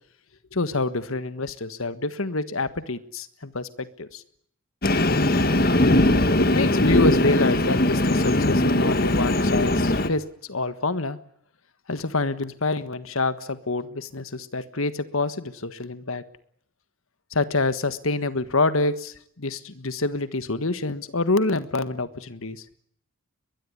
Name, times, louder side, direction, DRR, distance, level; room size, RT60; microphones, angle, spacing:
voice 1, 0.5-4.2 6.4-10.2 10.5-11.2 11.9-16.2 17.3-22.6, left 3 dB, 80° left, 13 dB, 1.5 m, -26 dB
Train, 4.8-10.1, left 1 dB, 45° left, 1.6 m, -20 dB
22.5 x 21.5 x 9.7 m, 0.65 s
head